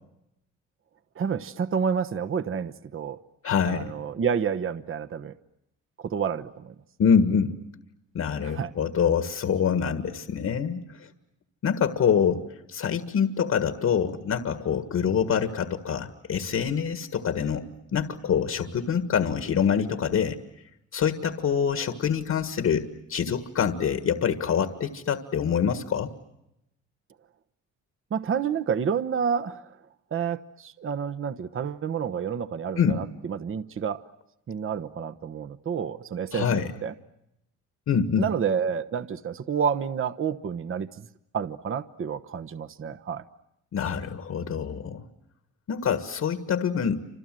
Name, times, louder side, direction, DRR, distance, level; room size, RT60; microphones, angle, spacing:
voice 1, 1.2-3.2 3.7-5.3 6.0-6.7 8.4-8.7 28.1-29.8 30.1-34.0 34.5-36.9 38.2-41.1 41.3-43.2, right 7 dB, 45° right, 11 dB, 1.1 m, -29 dB
voice 2, 3.4-3.9 7.0-7.5 8.1-11.1 11.6-20.4 20.9-26.1 32.8-33.0 36.3-36.7 37.9-38.3 43.7-45.0 45.7-47.0, left 7 dB, 60° left, 8 dB, 1.8 m, -25 dB
29.0 x 27.0 x 7.7 m, 0.88 s
cardioid pair, 90°, 30 cm